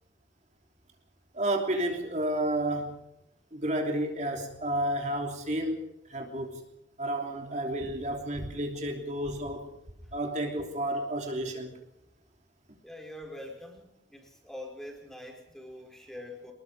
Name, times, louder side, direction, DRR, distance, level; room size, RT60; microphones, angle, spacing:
voice 1, 1.3-3.0 3.5-5.8 6.1-6.6 7.0-9.7 10.1-11.8, right 1 dB, 40° right, 2 dB, 3.2 m, -31 dB
voice 2, 12.8-16.5, left 1 dB, ahead, 2 dB, 4.9 m, -44 dB
26.0 x 21.0 x 4.9 m, 0.86 s
head